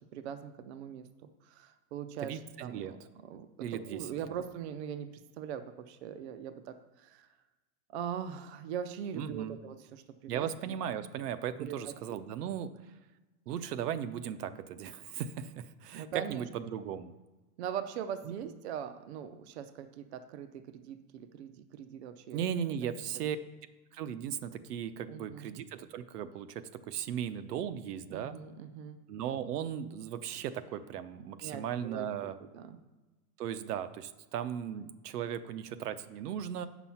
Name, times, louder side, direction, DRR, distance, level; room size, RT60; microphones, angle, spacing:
voice 1, 0.1-5.1 5.4-7.3 7.9-10.5 11.6-11.9 15.9-16.4 17.6-22.5 25.1-25.5 28.1-29.0 31.4-32.8, right 8 dB, 45° right, 10 dB, 0.5 m, -41 dB
voice 2, 2.2-2.9 3.6-4.1 9.1-9.6 10.3-12.7 13.5-17.1 18.3-18.4 22.3-23.4 23.9-28.4 29.1-32.4 33.4-36.7, right 9 dB, 80° right, 12 dB, 0.8 m, -37 dB
8.1 x 6.1 x 5.7 m, 1.2 s
supercardioid pair, 175°, 46 cm